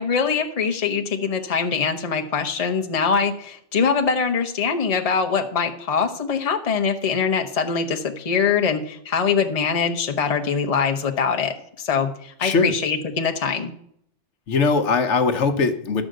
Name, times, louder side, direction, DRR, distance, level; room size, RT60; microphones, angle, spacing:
voice 1, 0.0-13.7, left 6 dB, 35° left, 4 dB, 0.9 m, -23 dB
voice 2, 12.4-12.7 14.5-16.0, left 4 dB, 75° left, 8 dB, 1.2 m, -20 dB
12.0 x 5.0 x 7.8 m, 0.68 s
omnidirectional pair, 1.2 m